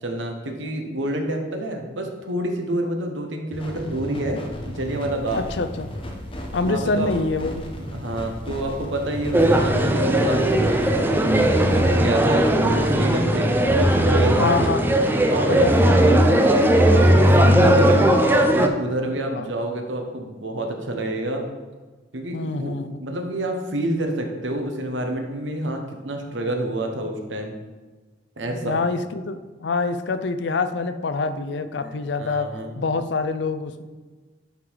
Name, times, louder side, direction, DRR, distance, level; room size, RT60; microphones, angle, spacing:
voice 1, 0.0-4.4 4.6-5.4 6.6-7.3 7.9-10.9 11.7-14.7 15.1-18.1 18.5-21.4 22.1-27.5 28.4-28.8 31.5-32.9, right 1 dB, 85° right, 3 dB, 1.2 m, -28 dB
sound 1, 3.5-14.7, left 1 dB, 30° left, 1.0 m, -34 dB
voice 2, 5.3-5.9 6.5-7.7 14.4-14.9 15.5-16.2 17.8-17.9 19.3-19.4 22.3-23.1 28.6-32.5 32.8-33.8, left 4 dB, 65° left, 10 dB, 0.5 m, -26 dB
sound 2, 9.3-18.7, right 1 dB, 10° right, 0.5 m, -18 dB
11.0 x 3.9 x 4.7 m, 1.3 s
head